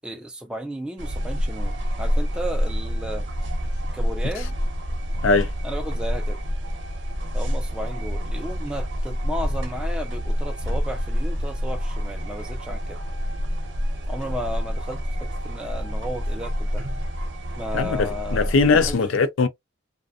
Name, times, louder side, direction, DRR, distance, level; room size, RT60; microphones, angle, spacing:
voice 1, 0.0-3.3 3.9-4.5 5.6-6.4 7.3-13.0 14.1-15.0 15.4-16.8 17.6-18.4 18.8-19.0, equal, 5° right, 0.3 m, -34 dB
sound 1, 1.0-18.9, equal, 65° right, 0.7 m, -27 dB
voice 2, 17.7-19.5, left 4 dB, 85° left, 0.4 m, -20 dB
2.5 x 2.2 x 2.3 m
head